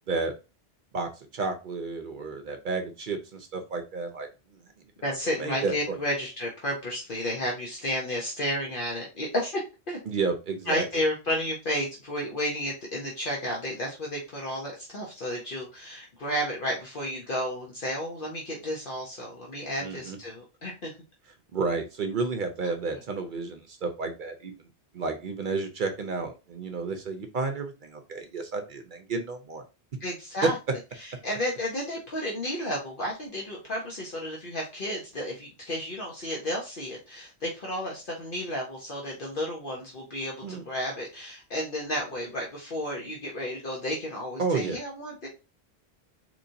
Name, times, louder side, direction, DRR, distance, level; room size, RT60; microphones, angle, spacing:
voice 1, 0.9-4.6 5.4-6.0 10.1-10.8 19.8-20.2 21.5-24.5 24.9-29.6 30.4-30.5 40.4-40.6 44.4-44.8, right 4 dB, 55° right, 6 dB, 0.7 m, -31 dB
voice 2, 5.0-9.6 9.9-10.0 10.7-20.9 30.0-30.5 31.0-45.3, left 1 dB, 55° left, -2 dB, 1.0 m, -32 dB
4.0 x 3.1 x 2.6 m, 0.29 s
omnidirectional pair, 1.1 m